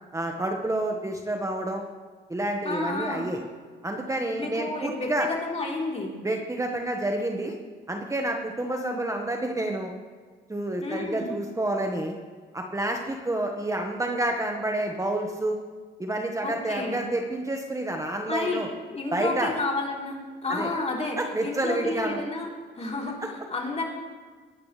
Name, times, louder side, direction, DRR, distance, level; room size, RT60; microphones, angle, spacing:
voice 1, 0.1-1.8 2.3-3.4 3.8-5.3 6.2-7.6 7.9-9.9 10.5-12.2 12.5-15.6 16.0-18.7 19.1-19.5 20.5-20.7 21.2-22.2, right 1 dB, 15° right, 2 dB, 1.4 m, -29 dB
voice 2, 2.6-3.3 4.4-6.1 8.6-9.0 10.8-11.4 16.4-17.0 18.3-18.6 18.9-22.5 22.7-23.8, left 2 dB, 35° left, -2 dB, 3.7 m, -31 dB
22.0 x 11.0 x 3.3 m, 1.5 s
cardioid pair, 90°, 20 cm